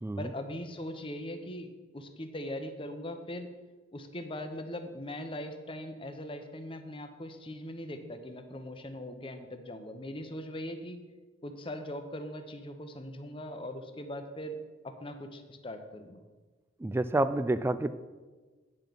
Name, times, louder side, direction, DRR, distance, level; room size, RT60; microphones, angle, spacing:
voice 1, 0.2-1.7 1.9-3.5 3.9-11.0 11.4-14.6 14.8-16.2, left 1 dB, 30° left, 7 dB, 0.9 m, -40 dB
voice 2, 16.8-18.0, right 2 dB, 15° right, 13 dB, 0.3 m, -29 dB
9.0 x 6.0 x 6.9 m, 1.3 s
head